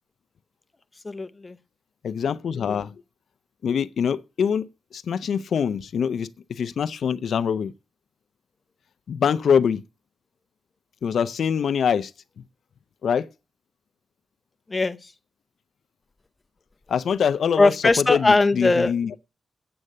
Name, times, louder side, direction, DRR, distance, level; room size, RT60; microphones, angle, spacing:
voice 1, 1.0-1.6 14.7-15.1 17.6-18.9, left 3 dB, 25° left, 0.7 m, -20 dB
voice 2, 2.0-3.0 3.6-4.7 4.9-7.7 9.1-9.8 11.0-12.1 13.0-13.3 16.9-19.1, left 7 dB, 75° left, 0.5 m, -24 dB
8.7 x 8.1 x 6.5 m
wide cardioid pair, 120°, 0 cm